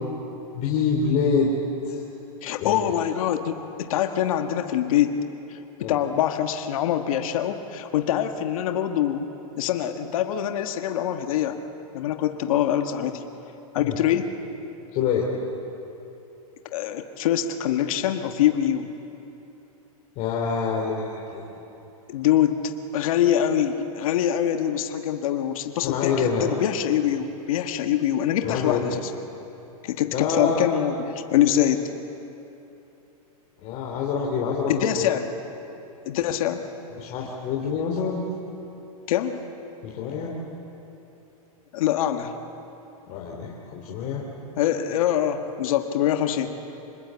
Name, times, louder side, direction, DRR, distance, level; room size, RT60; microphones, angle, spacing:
voice 1, 0.5-1.5 1.8-2.0 2.6-2.9 5.8-6.0 13.8-13.9 14.9-15.3 20.2-21.6 25.8-26.5 28.4-29.0 30.1-30.7 33.6-35.1 37.0-38.2 39.8-40.3 43.1-44.2, left 6 dB, 40° left, -2 dB, 3.1 m, -26 dB
voice 2, 2.4-5.2 5.5-9.3 9.6-11.6 11.9-13.2 13.7-14.3 16.7-18.9 22.1-29.1 29.8-31.9 34.7-35.3 36.0-36.7 39.1-39.4 41.7-42.3 44.6-46.5, left 10 dB, 65° left, 6 dB, 1.5 m, -24 dB
26.0 x 20.5 x 8.2 m, 3.0 s
hypercardioid pair, 135°, 19 cm